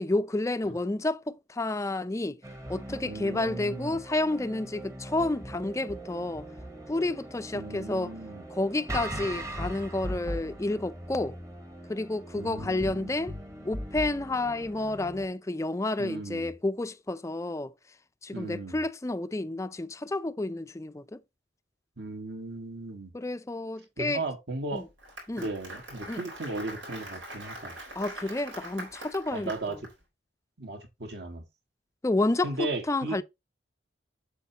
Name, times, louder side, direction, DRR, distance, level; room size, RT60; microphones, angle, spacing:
voice 1, 0.0-2.4 2.7-6.5 6.9-8.2 8.5-11.4 11.9-13.3 13.6-17.7 18.2-21.2 23.1-24.2 24.7-24.9 25.3-25.5 26.1-26.2 28.0-29.8 32.0-33.2, left 2 dB, 15° left, 0.4 m, -30 dB
sound 1, 2.4-15.3, right 1 dB, 15° right, 1.0 m, -40 dB
voice 2, 3.0-4.0 7.5-8.4 12.3-13.2 16.0-16.5 18.3-18.8 22.0-23.1 24.0-24.8 25.4-27.8 29.3-29.8 30.6-31.4 32.4-33.2, right 2 dB, 60° right, 1.7 m, -36 dB
Applause, 24.8-29.9, right 1 dB, 90° right, 4.2 m, -43 dB
8.1 x 7.0 x 2.9 m
head